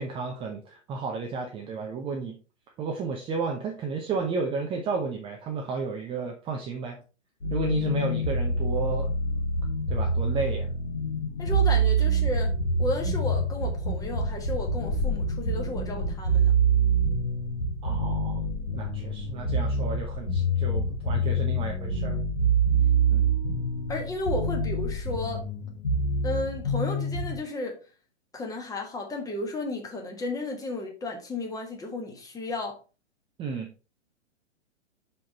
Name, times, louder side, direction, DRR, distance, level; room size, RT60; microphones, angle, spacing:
voice 1, 0.0-2.4 2.8-7.0 7.5-9.1 9.9-10.7 17.8-18.4 18.7-22.2 23.1-23.3 33.4-33.7, right 5 dB, 15° right, 0.7 m, -32 dB
sound 1, 7.4-27.3, right 2 dB, 75° left, 2.5 m, -26 dB
voice 2, 11.4-12.5 12.8-16.5 23.9-25.4 26.2-27.8 28.3-32.8, left 2 dB, 10° left, 1.3 m, -33 dB
sound 2, 14.0-25.5, left 3 dB, 45° left, 2.2 m, -38 dB
5.8 x 5.0 x 4.0 m
figure-of-eight pair, 115°, 36 cm